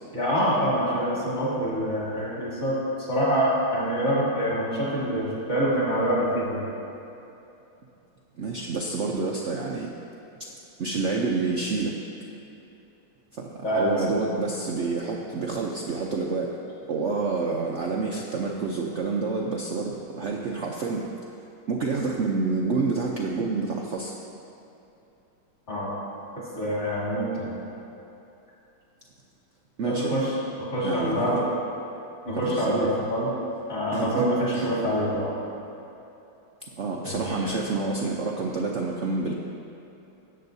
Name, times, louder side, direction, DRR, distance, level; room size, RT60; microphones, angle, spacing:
voice 1, 0.1-6.7 13.6-14.2 25.7-25.9 26.5-27.6 29.8-30.3 30.6-31.4 32.2-33.3 33.7-35.3 37.0-37.5, equal, 35° left, -8 dB, 3.0 m, -26 dB
voice 2, 8.4-9.9 10.8-11.9 13.3-16.6 16.9-21.1 21.7-24.1 29.8-30.1 30.8-31.4 32.3-32.9 33.9-34.3 34.5-34.8 36.8-39.3, right 4 dB, 80° right, -1 dB, 0.6 m, -28 dB
18.5 x 7.7 x 2.7 m, 2.9 s
omnidirectional pair, 2.1 m